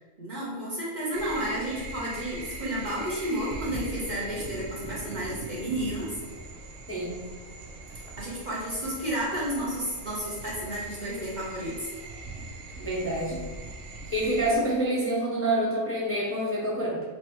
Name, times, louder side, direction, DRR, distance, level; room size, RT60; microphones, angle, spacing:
voice 1, 0.2-6.2 8.2-11.9, equal, 40° right, -6 dB, 1.0 m, -32 dB
sound 1, 1.1-14.5, right 2 dB, 80° right, 1.0 m, -41 dB
voice 2, 6.9-7.2 12.8-13.4 14.1-17.0, right 1 dB, 15° left, -7 dB, 0.7 m, -27 dB
4.3 x 3.0 x 3.0 m, 1.4 s
omnidirectional pair, 1.3 m